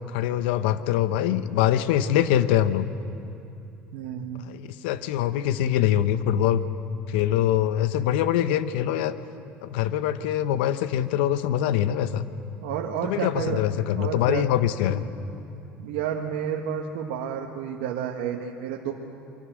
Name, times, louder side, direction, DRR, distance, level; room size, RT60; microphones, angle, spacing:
voice 1, 0.1-2.9 4.4-6.6 7.1-9.1 9.6-12.3 13.1-15.0, left 11 dB, 80° left, 12 dB, 1.1 m, -24 dB
voice 2, 3.9-4.5 12.6-13.7 14.0-14.5 14.8-15.0 15.8-18.9, right 8 dB, 75° right, 0 dB, 1.7 m, -30 dB
25.5 x 24.0 x 6.4 m, 2.8 s
hypercardioid pair, 75°, 6 cm